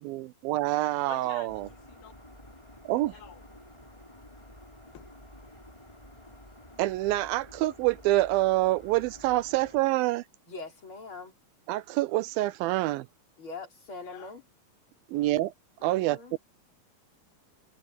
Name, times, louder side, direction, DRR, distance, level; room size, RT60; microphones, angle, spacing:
voice 1, 0.0-1.7 2.9-3.1 6.8-10.2 11.7-13.1 15.1-15.5 15.8-16.4, right 17 dB, 80° right, 2.3 m, -26 dB
voice 2, 1.1-2.1 3.1-3.4 4.9-5.0 14.0-14.3, left 9 dB, 80° left, 3.5 m, -48 dB
sound 1, 1.5-9.8, left 1 dB, 10° left, 6.0 m, -51 dB
voice 3, 10.5-11.3 13.4-14.4 15.8-16.3, left 3 dB, 35° left, 5.1 m, -42 dB
omnidirectional pair, 4.3 m